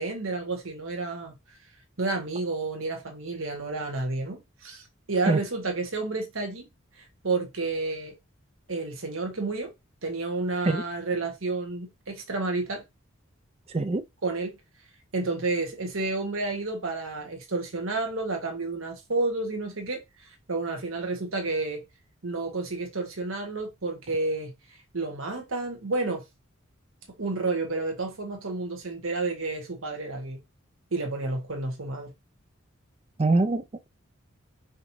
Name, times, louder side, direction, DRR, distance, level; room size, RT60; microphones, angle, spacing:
voice 1, 0.0-1.3 2.0-4.8 5.1-6.7 7.2-8.2 8.7-9.7 10.0-12.8 14.2-14.5 15.1-20.0 20.5-21.8 22.2-24.5 24.9-26.2 27.2-30.4 30.9-32.1, right 3 dB, 75° right, 1.3 m, -30 dB
voice 2, 33.2-33.9, right 3 dB, 30° right, 0.4 m, -23 dB
5.1 x 3.0 x 2.7 m
head